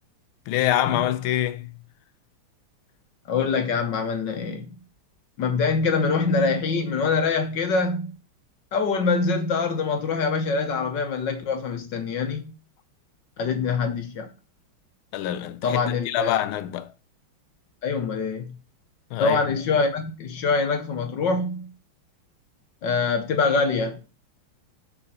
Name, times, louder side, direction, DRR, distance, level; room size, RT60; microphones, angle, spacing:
voice 1, 0.5-1.7 15.1-16.9 19.1-19.4, left 13 dB, 80° left, 1.5 m, -25 dB
voice 2, 3.3-4.7 5.4-8.1 8.7-12.5 13.4-14.3 15.6-16.4 17.8-18.5 19.2-21.7 22.8-24.0, left 4 dB, 65° left, 1.4 m, -24 dB
5.7 x 5.7 x 4.2 m
omnidirectional pair, 2.3 m